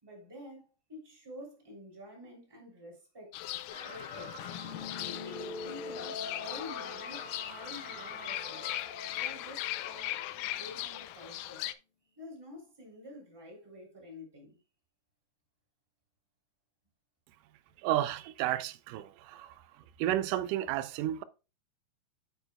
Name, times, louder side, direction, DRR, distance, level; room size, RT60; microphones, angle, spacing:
voice 1, 0.0-3.4 3.8-4.4 5.1-8.7 9.1-10.2 10.5-11.6 12.1-14.6, left 1 dB, 5° right, 2.8 m, -49 dB
Fowl / Bird, 3.3-11.7, left 14 dB, 80° left, 2.1 m, -39 dB
sound 1, 3.7-10.5, left 2 dB, 30° left, 3.8 m, -44 dB
voice 2, 17.8-19.6 20.0-21.2, right 13 dB, 85° right, 2.2 m, -32 dB
9.1 x 8.2 x 2.3 m
omnidirectional pair, 3.8 m